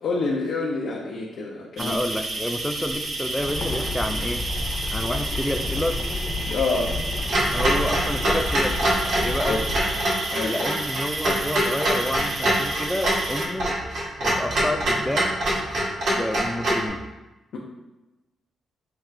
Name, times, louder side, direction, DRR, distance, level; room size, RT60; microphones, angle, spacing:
voice 1, 0.0-2.0 6.5-6.9 9.5-9.7 10.3-10.6 17.5-17.6, left 3 dB, 70° left, -3 dB, 0.6 m, -27 dB
voice 2, 1.8-4.5 4.9-6.0 7.5-8.9 9.2-9.6 10.5-13.8 14.2-15.4 16.1-17.0, left 1 dB, 5° left, 6 dB, 0.3 m, -29 dB
sound 1, 1.8-13.5, right 2 dB, 55° right, 0.7 m, -31 dB
sound 2, 3.3-10.0, left 3 dB, 40° left, 0.8 m, -31 dB
Clock, 7.3-16.9, right 1 dB, 75° right, 1.2 m, -25 dB
5.9 x 2.4 x 3.2 m, 1.0 s
cardioid pair, 130°, 0 cm